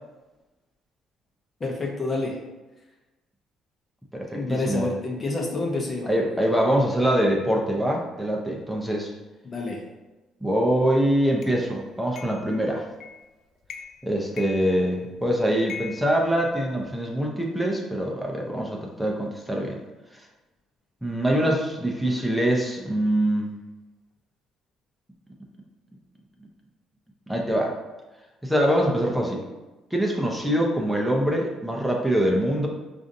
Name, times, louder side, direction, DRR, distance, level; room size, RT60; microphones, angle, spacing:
voice 1, 1.6-2.4 4.3-6.1 9.4-9.9, left 2 dB, 35° left, 1 dB, 0.8 m, -28 dB
voice 2, 4.1-4.9 6.1-9.1 10.4-12.8 14.0-19.8 21.0-23.5 27.3-27.7 28.4-29.4 29.9-32.7, equal, 5° right, -1 dB, 0.7 m, -24 dB
sound 1, 11.4-11.6 12.2-12.5 13.0-13.3 13.6-14.1 14.4-15.2 15.7-16.9, left 6 dB, 55° left, 0.3 m, -41 dB
4.8 x 2.6 x 2.6 m, 1.1 s
supercardioid pair, 75°, 0 cm